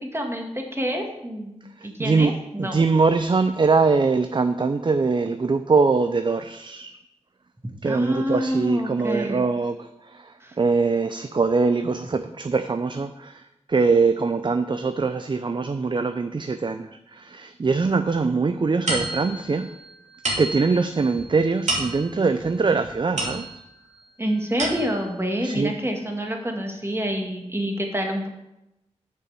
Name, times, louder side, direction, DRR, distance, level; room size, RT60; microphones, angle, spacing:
voice 1, 0.1-2.8 7.9-9.4 10.4-10.6 24.2-28.3, equal, 20° right, 2 dB, 1.8 m, -27 dB
voice 2, 1.8-2.3 2.6-7.0 7.8-9.8 10.0-13.4 13.7-19.7 20.4-23.5 25.4-25.7, right 4 dB, 40° right, 9 dB, 0.5 m, -22 dB
sound 1, 18.9-23.9 24.3-25.2, right 2 dB, 80° right, 2.6 m, -31 dB
6.9 x 5.8 x 7.0 m, 0.90 s
wide cardioid pair, 60°, 12 cm